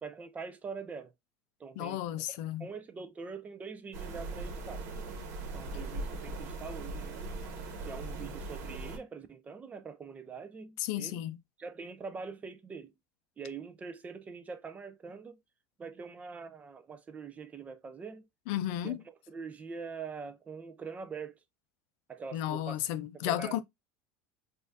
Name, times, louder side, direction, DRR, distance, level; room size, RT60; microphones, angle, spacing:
voice 1, 0.0-1.1 1.6-2.0 2.3-4.8 5.5-7.4 7.8-11.2 11.6-12.9 13.4-15.4 15.8-18.3 18.8-21.4 22.1-22.8 23.1-23.6, right 5 dB, 15° right, 0.4 m, -44 dB
voice 2, 1.8-2.7 10.8-11.4 18.5-19.0 22.3-23.6, left 13 dB, 60° left, 0.4 m, -33 dB
sound 1, 3.9-9.0, right 2 dB, 70° right, 1.1 m, -39 dB
4.2 x 2.4 x 2.5 m
cardioid pair, 160°, 9 cm